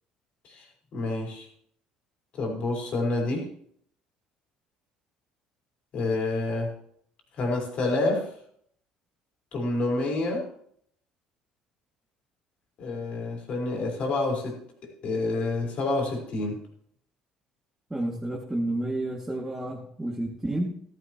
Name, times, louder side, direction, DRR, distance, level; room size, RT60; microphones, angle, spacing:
voice 1, 0.9-1.5 2.3-3.5 5.9-6.7 7.4-8.3 9.5-10.5 12.8-14.6 15.0-16.6, left 2 dB, 55° left, 0 dB, 5.0 m, -28 dB
voice 2, 17.9-20.7, right 1 dB, 10° right, -3 dB, 2.5 m, -30 dB
15.0 x 13.5 x 3.1 m, 0.66 s
supercardioid pair, 100°, 3 cm